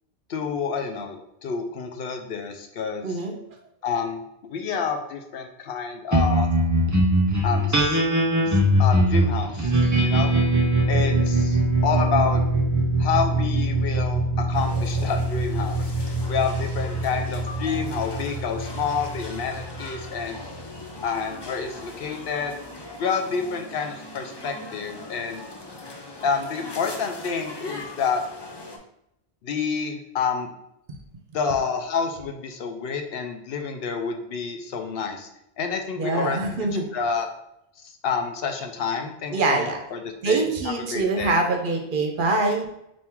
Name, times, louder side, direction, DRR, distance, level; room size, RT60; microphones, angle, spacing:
voice 1, 0.3-1.2 1.4-3.2 3.8-6.5 7.4-8.0 8.5-10.3 10.9-12.4 13.0-15.8 16.3-20.4 21.0-22.5 23.0-25.4 26.2-28.2 29.4-30.5 31.3-35.3 35.6-36.7 36.9-37.3 38.0-41.4, left 5 dB, 70° left, 5 dB, 0.7 m, -28 dB
voice 2, 3.0-3.3 30.9-31.0 36.0-36.9 39.3-39.8 40.2-42.7, right 3 dB, 60° right, 2 dB, 0.7 m, -24 dB
sound 1, 6.1-20.8, right 1 dB, 25° right, 0.4 m, -22 dB
sound 2, 14.5-28.8, left 2 dB, 35° left, 0.4 m, -40 dB
3.6 x 2.6 x 4.3 m, 0.81 s
omnidirectional pair, 1.1 m